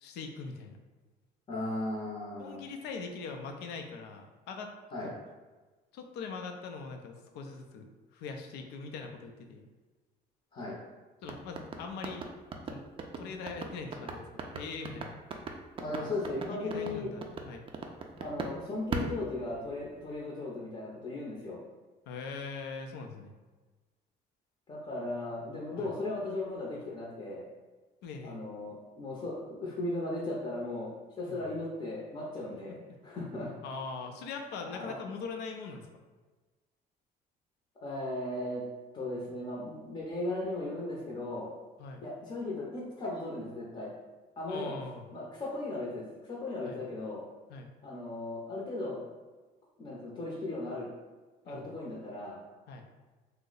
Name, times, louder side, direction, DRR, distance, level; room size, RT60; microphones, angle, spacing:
voice 1, 0.0-0.8 2.4-4.7 5.0-5.2 5.9-9.7 11.2-12.3 12.7-12.8 13.2-15.1 16.0-16.1 16.4-17.6 22.1-23.4 25.8-25.9 28.0-28.4 31.3-31.4 33.6-35.9 41.8-42.1 44.5-45.1 46.6-46.8 47.5-47.7 51.4-51.7 52.7-52.9, left 4 dB, 80° left, 4 dB, 0.5 m, -42 dB
voice 2, 1.5-2.7 4.9-5.1 10.5-10.8 15.8-17.1 18.2-21.6 24.7-27.4 28.2-30.9 31.2-32.8 33.0-33.5 34.7-34.9 37.8-38.6 38.9-41.5 42.0-43.9 44.4-44.7 45.1-47.2 47.8-49.0 49.8-50.9 51.5-52.4, left 2 dB, 35° left, -5 dB, 0.6 m, -37 dB
sound 1, 11.2-18.6 18.9-20.0, right 4 dB, 30° right, 0.3 m, -38 dB
2.7 x 2.0 x 3.8 m, 1.3 s
cardioid pair, 110°, 17 cm